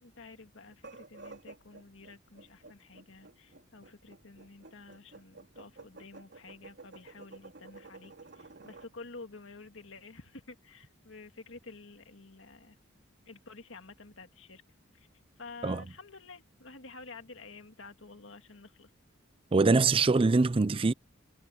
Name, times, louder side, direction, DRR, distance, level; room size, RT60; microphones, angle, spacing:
voice 1, 0.0-12.8 13.3-14.6 14.9-15.1 15.4-18.9, left 3 dB, 70° left, 2.1 m, -50 dB
sound 1, 0.7-8.9, right 3 dB, 60° right, 3.3 m, -52 dB
voice 2, 19.5-20.9, right 3 dB, 25° right, 0.4 m, -23 dB
head